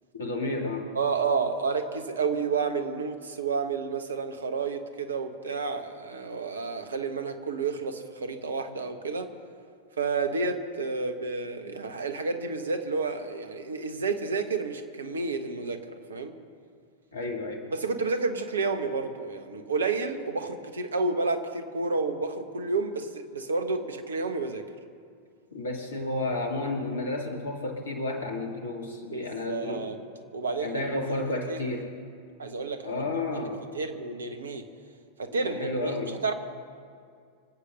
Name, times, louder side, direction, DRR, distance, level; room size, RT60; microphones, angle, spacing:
voice 1, 0.1-0.9 17.1-17.7 25.5-29.9 30.6-31.9 32.8-33.6 35.3-36.2, left 2 dB, 70° left, 2 dB, 2.5 m, -32 dB
voice 2, 0.9-9.3 10.0-16.3 17.7-24.6 29.1-30.0 30.3-31.0 31.5-31.6 32.4-33.1 33.7-34.7 35.2-36.3, right 4 dB, 70° right, 8 dB, 1.3 m, -30 dB
25.5 x 8.6 x 6.5 m, 2.3 s
figure-of-eight pair, 90°, 0 cm